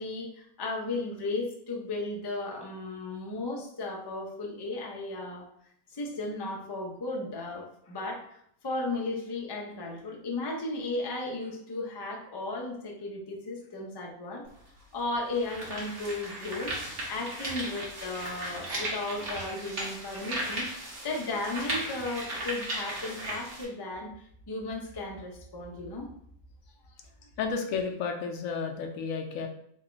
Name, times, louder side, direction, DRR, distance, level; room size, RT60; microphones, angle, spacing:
voice 1, 0.0-5.5 5.9-14.5 14.9-16.8 17.1-20.7 21.0-26.1, left 2 dB, 35° left, -1 dB, 0.4 m, -35 dB
sound 1, 14.4-14.5 15.2-23.6, right 1 dB, 50° right, 1.2 m, -36 dB
voice 2, 27.4-29.5, left 5 dB, 80° left, 4 dB, 1.0 m, -32 dB
3.3 x 2.3 x 3.8 m, 0.71 s
omnidirectional pair, 1.4 m